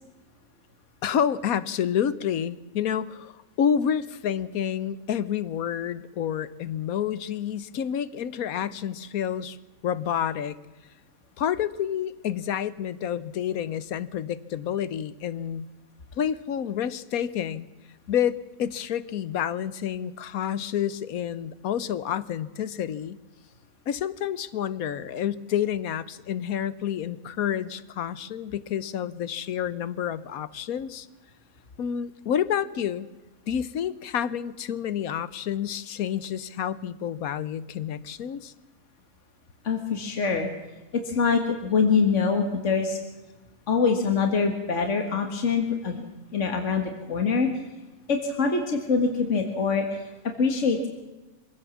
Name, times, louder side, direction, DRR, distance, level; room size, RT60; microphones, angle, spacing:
voice 1, 1.0-9.6 9.8-10.6 11.4-15.7 16.2-17.7 18.1-23.2 23.9-31.1 31.8-33.1 33.5-38.5, left 9 dB, 85° left, 16 dB, 1.3 m, -29 dB
voice 2, 39.6-40.5 41.1-43.0 43.7-46.0 46.3-47.5 48.1-50.1 50.4-50.9, left 5 dB, 60° left, 4 dB, 2.1 m, -24 dB
24.0 x 16.5 x 7.2 m, 1.1 s
omnidirectional pair, 1.5 m